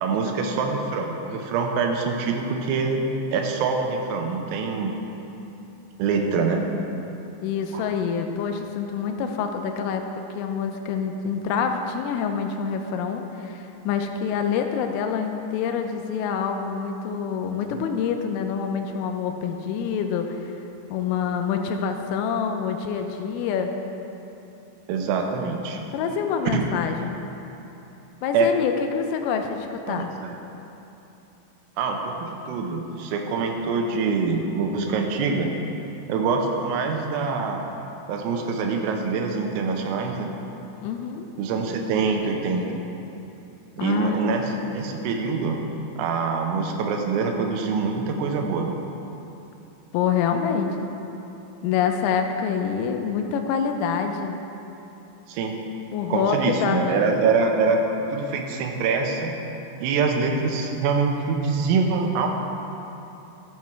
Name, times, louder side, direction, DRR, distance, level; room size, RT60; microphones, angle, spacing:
voice 1, 0.0-4.9 6.0-6.6 7.7-7.9 17.7-17.8 24.9-25.8 26.5-26.7 28.3-28.5 29.9-30.4 31.8-35.5 36.1-37.7 38.1-40.3 41.4-42.7 43.8-45.6 46.0-48.8 55.3-55.6 56.1-57.8 58.1-59.3 59.8-62.3, right 4 dB, 85° right, 3 dB, 3.6 m, -25 dB
voice 2, 7.4-20.4 20.9-23.7 25.9-27.2 28.2-30.1 40.8-41.3 43.8-44.2 44.5-44.6 49.9-50.9 51.6-54.4 55.9-57.2, left 6 dB, 85° left, 5 dB, 3.3 m, -26 dB
13.5 x 7.3 x 4.6 m, 3.0 s
omnidirectional pair, 5.8 m